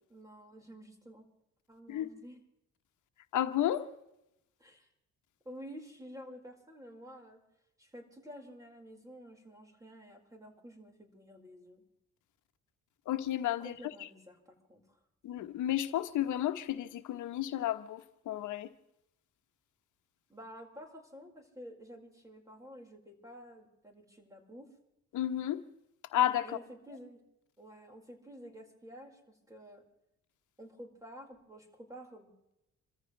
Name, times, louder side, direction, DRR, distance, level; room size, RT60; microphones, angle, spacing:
voice 1, 0.1-1.2 1.7-2.4 4.6-4.9 5.4-7.4 7.8-11.8 13.6-15.0 20.3-24.7 26.4-27.2 27.6-29.8 30.6-32.3, equal, 10° right, 4.8 m, -50 dB
voice 2, 3.3-3.9 13.1-13.7 15.2-18.0 18.3-18.7 25.1-25.6 26.1-26.4, left 12 dB, 80° left, 1.2 m, -32 dB
27.5 x 14.5 x 3.3 m
cardioid pair, 90°, 30 cm